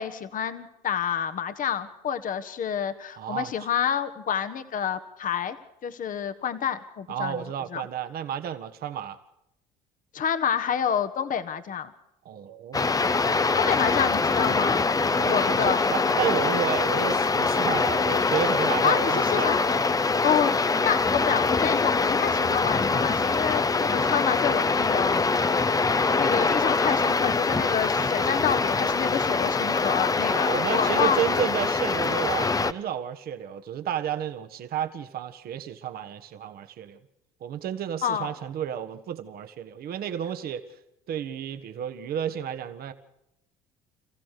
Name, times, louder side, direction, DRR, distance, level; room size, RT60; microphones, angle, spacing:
voice 1, 0.0-5.6 5.8-7.4 7.7-7.9 10.1-11.9 13.6-14.9 15.3-15.8 18.8-19.9 20.2-25.9 26.2-31.2 38.0-38.3, left 8 dB, 50° left, 11 dB, 1.4 m, -28 dB
voice 2, 3.2-3.5 7.1-9.2 12.2-12.9 15.0-19.5 20.2-20.3 30.3-37.0 37.4-40.6 41.1-42.9, right 9 dB, 55° right, 8 dB, 1.5 m, -32 dB
sound 1, 12.7-32.7, left 4 dB, 20° left, 0.8 m, -24 dB
27.5 x 15.0 x 6.7 m, 0.84 s
hypercardioid pair, 70°, 18 cm